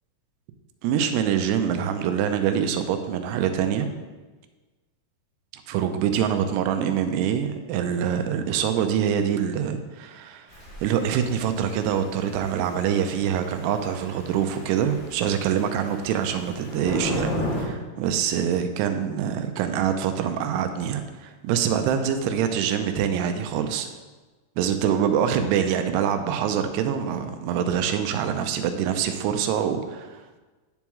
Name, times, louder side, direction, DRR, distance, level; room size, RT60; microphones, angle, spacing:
voice 1, 0.8-3.9 5.7-10.5 10.8-23.9 24.6-30.4, right 8 dB, 85° right, 7 dB, 2.7 m, -25 dB
Thunder / Rain, 10.5-17.7, left 1 dB, 80° left, 4.6 m, -36 dB
10.5 x 7.1 x 3.1 m, 1.3 s
omnidirectional pair, 4.8 m